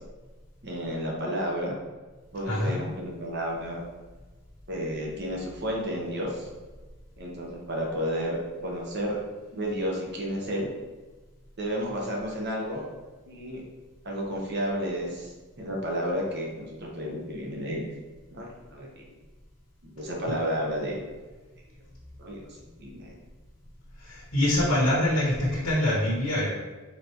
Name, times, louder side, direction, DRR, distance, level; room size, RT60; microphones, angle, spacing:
voice 1, 0.6-1.7 2.3-3.8 4.7-6.5 7.2-9.2 9.5-10.7 11.6-12.8 13.3-13.6 14.0-17.8 18.3-19.0 19.8-21.0 22.2-23.1, equal, 50° right, -2 dB, 1.0 m, -32 dB
voice 2, 2.5-2.9 20.3-20.4 24.0-26.5, left 1 dB, 75° left, -7 dB, 1.1 m, -25 dB
4.4 x 3.9 x 3.0 m, 1.3 s
head